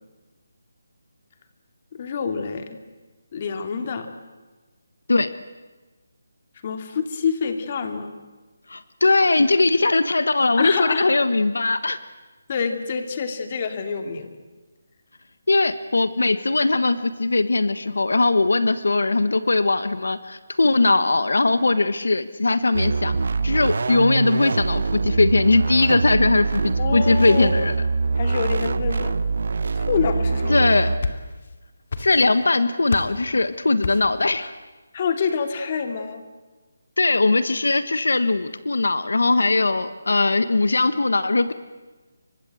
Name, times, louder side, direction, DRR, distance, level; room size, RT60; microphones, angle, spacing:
voice 1, 1.9-2.8 3.3-4.1 6.6-8.1 10.6-11.1 12.5-14.3 26.8-27.5 28.2-29.2 29.7-30.7 34.9-36.2, left 6 dB, 35° left, 7 dB, 2.7 m, -26 dB
voice 2, 8.7-12.0 15.5-23.1 23.4-27.7 30.5-30.9 32.0-34.5 37.0-41.5, left 3 dB, 85° left, 12 dB, 1.4 m, -20 dB
sound 1, 22.7-31.0, right 3 dB, 65° right, 1.3 m, -24 dB
sound 2, 30.6-31.6 31.9-32.5 32.9-33.3 33.8-34.2, left 4 dB, 55° left, 2.7 m, -30 dB
29.5 x 25.0 x 7.9 m, 1.2 s
hypercardioid pair, 165°, 0 cm